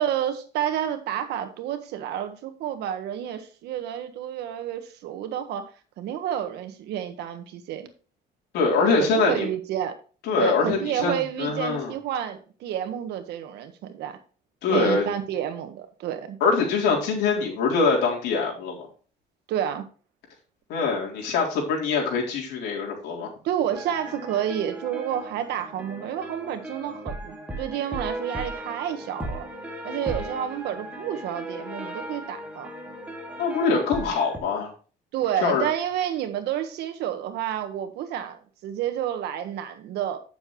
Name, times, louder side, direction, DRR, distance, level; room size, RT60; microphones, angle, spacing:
voice 1, 0.0-5.7 6.0-7.9 9.0-10.0 10.4-14.2 14.7-16.4 19.5-19.8 23.4-29.4 29.8-32.7 35.1-40.2, right 10 dB, 80° right, 1.5 m, -30 dB
voice 2, 8.5-9.5 10.3-11.9 14.6-15.1 16.4-18.9 20.7-23.3 33.4-34.7 35.4-35.7, left 4 dB, 80° left, 3.7 m, -23 dB
sound 1, 23.7-34.4, equal, 10° right, 2.4 m, -37 dB
9.2 x 7.1 x 3.2 m
cardioid pair, 110°, 17 cm